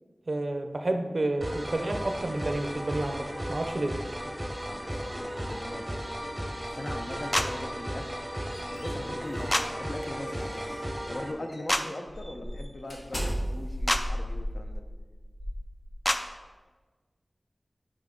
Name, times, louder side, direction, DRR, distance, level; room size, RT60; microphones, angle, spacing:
voice 1, 0.3-3.9, right 2 dB, 60° right, 5 dB, 0.5 m, -30 dB
sound 1, 1.4-11.3, equal, 5° right, 0.8 m, -35 dB
voice 2, 4.6-6.1 6.6-8.2 8.4-10.6 11.1-14.8, left 1 dB, 50° left, 4 dB, 0.6 m, -40 dB
sound 2, 7.3-7.5 9.5-9.7 11.7-11.8 13.9-14.0 16.0-16.2, left 1 dB, 20° left, 0.4 m, -25 dB
sound 3, 8.1-10.9 11.4-11.6 12.1-16.3, equal, 85° left, 1.2 m, -36 dB
6.1 x 4.9 x 3.7 m, 1.4 s
wide cardioid pair, 70°, 0 cm